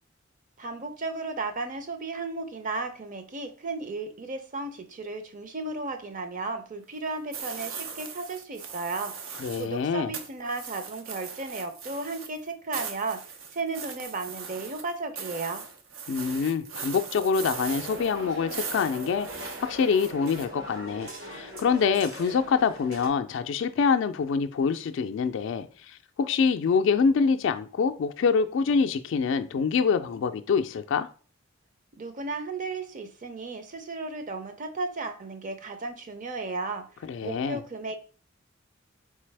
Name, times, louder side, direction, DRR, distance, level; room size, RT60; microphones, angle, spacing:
voice 1, 0.6-13.2 13.5-15.6 32.0-36.8 37.2-38.0, right 3 dB, 40° right, 0.6 m, -34 dB
sound 1, 7.3-9.7 10.1-20.5, right 6 dB, 85° right, 0.7 m, -39 dB
voice 2, 9.4-10.1 16.1-31.1 37.1-37.6, left 5 dB, 65° left, 0.3 m, -25 dB
sound 2, 17.3-23.1, equal, 70° right, 1.6 m, -41 dB
4.0 x 3.3 x 3.3 m
head